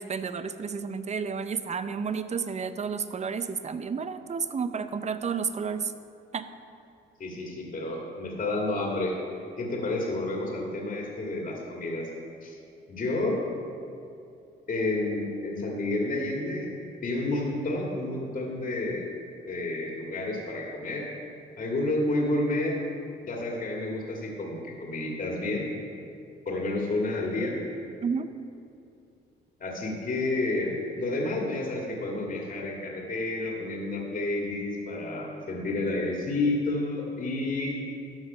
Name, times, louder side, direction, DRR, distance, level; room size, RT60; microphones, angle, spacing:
voice 1, 0.0-5.9 6.3-6.5 28.0-28.3, right 6 dB, 35° right, 11 dB, 0.6 m, -31 dB
voice 2, 7.2-9.1 9.6-12.1 12.4-12.6 12.9-13.4 14.7-16.7 17.0-19.0 19.5-21.1 21.6-22.8 23.2-25.7 26.5-27.6 29.6-37.8, left 2 dB, 45° left, -2 dB, 1.9 m, -30 dB
12.5 x 6.0 x 5.5 m, 2.6 s
cardioid pair, 90°, 20 cm